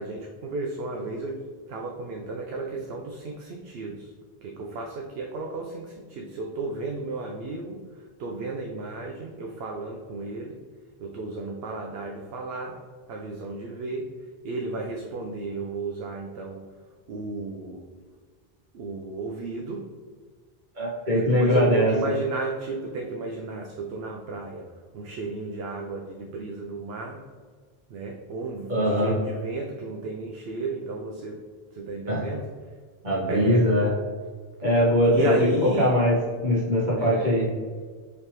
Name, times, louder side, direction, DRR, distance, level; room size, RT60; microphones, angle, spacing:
voice 1, 0.0-1.4 1.7-4.1 4.4-10.6 11.0-12.8 13.1-14.1 14.4-16.6 17.1-17.8 18.7-19.9 21.1-27.2 27.9-31.4 31.7-32.5 33.3-33.7 35.1-35.9 37.0-37.3, right 3 dB, 70° right, 0 dB, 0.8 m, -33 dB
voice 2, 20.8-22.0 28.7-29.1 32.1-32.3 33.0-33.9 34.6-35.3 35.6-36.2 36.4-37.5, left 1 dB, 45° right, -6 dB, 1.5 m, -21 dB
5.0 x 3.3 x 2.9 m, 1.5 s
omnidirectional pair, 1.1 m